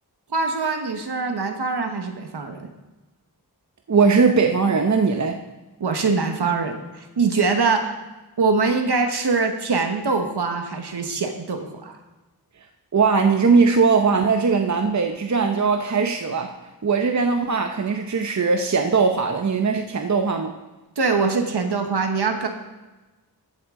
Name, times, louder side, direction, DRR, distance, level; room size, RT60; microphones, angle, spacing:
voice 1, 0.3-2.7 5.8-7.9 8.4-12.0 21.0-22.5, right 4 dB, 80° right, 5 dB, 1.1 m, -23 dB
voice 2, 3.9-5.4 12.9-16.5 16.8-20.5, right 5 dB, 45° right, 5 dB, 0.7 m, -20 dB
14.5 x 8.3 x 3.7 m, 1.1 s
wide cardioid pair, 70°, 39 cm